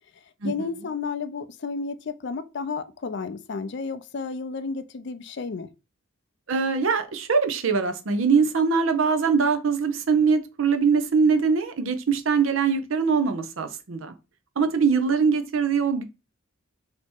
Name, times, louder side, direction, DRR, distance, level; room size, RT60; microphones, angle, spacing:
voice 1, 0.4-5.7, left 4 dB, 55° left, 0.4 m, -32 dB
voice 2, 6.5-14.1 14.6-16.0, right 5 dB, 70° right, 0.6 m, -22 dB
3.4 x 2.9 x 4.3 m
head